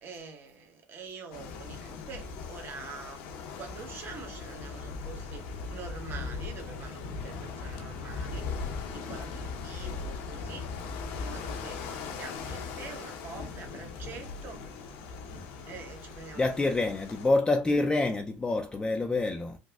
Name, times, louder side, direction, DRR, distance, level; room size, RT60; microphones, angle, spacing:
voice 1, 0.0-3.3 3.6-8.5 8.9-10.7 11.2-14.7 15.7-17.0, right 4 dB, 40° right, 1.1 m, -45 dB
sound 1, 1.3-17.3, left 4 dB, 85° left, 0.8 m, -39 dB
voice 2, 16.4-19.6, left 2 dB, 15° left, 0.4 m, -27 dB
3.8 x 2.6 x 2.3 m
supercardioid pair, 105°, 6 cm